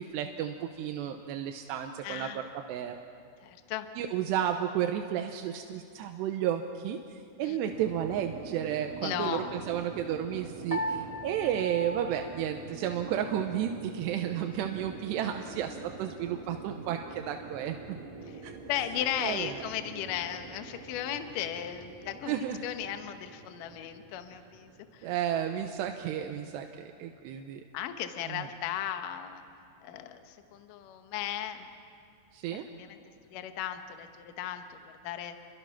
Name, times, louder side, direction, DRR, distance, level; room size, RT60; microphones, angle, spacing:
voice 1, 0.0-2.4 2.7-3.0 4.0-17.8 18.4-18.5 19.2-19.5 22.3-22.6 25.0-27.6 28.3-28.5 32.3-32.6, right 10 dB, 75° right, 5 dB, 2.7 m, -32 dB
voice 2, 2.0-2.4 3.4-3.9 7.4-7.6 9.0-9.5 18.7-22.4 22.6-25.1 27.7-29.4 29.8-31.7 32.8-33.0 33.3-35.4, left 10 dB, 75° left, 7 dB, 1.9 m, -36 dB
sound 1, 7.7-26.1, right 4 dB, 50° right, 3.2 m, -46 dB
Piano, 10.7-13.2, equal, 25° right, 0.8 m, -38 dB
29.5 x 23.0 x 5.9 m, 2.5 s
omnidirectional pair, 5.6 m